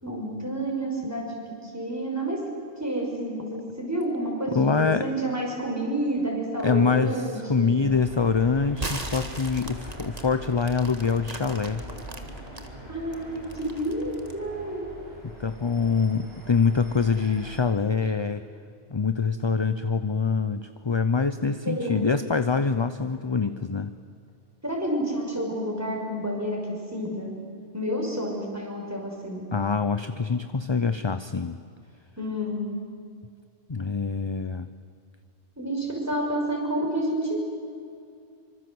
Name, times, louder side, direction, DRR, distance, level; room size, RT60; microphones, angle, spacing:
voice 1, 0.0-2.4 2.8-7.8 12.9-14.8 21.6-22.1 24.6-27.3 27.7-29.5 32.2-32.6 35.6-37.4, right 1 dB, 15° right, -1 dB, 6.0 m, -29 dB
voice 2, 4.5-5.1 6.6-11.8 15.2-18.4 18.9-23.9 29.5-31.6 33.7-34.7, left 5 dB, 30° left, 11 dB, 0.7 m, -25 dB
sound 1, 7.8-17.6, equal, 65° right, 7.5 m, -42 dB
sound 2, 8.8-12.7 13.1-14.4, right 2 dB, 35° right, 2.0 m, -37 dB
25.5 x 25.0 x 7.9 m, 2.4 s
omnidirectional pair, 1.1 m